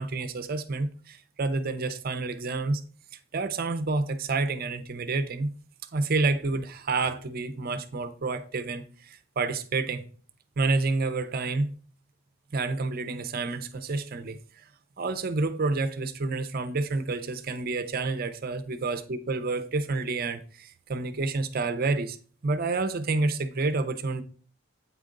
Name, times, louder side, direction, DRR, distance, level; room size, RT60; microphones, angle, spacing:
voice 1, 0.0-2.8 3.3-5.5 5.9-10.0 10.6-11.7 12.5-14.4 15.0-22.2 22.4-24.2, right 3 dB, 45° right, 0.6 m, -29 dB
8.4 x 4.9 x 3.8 m
head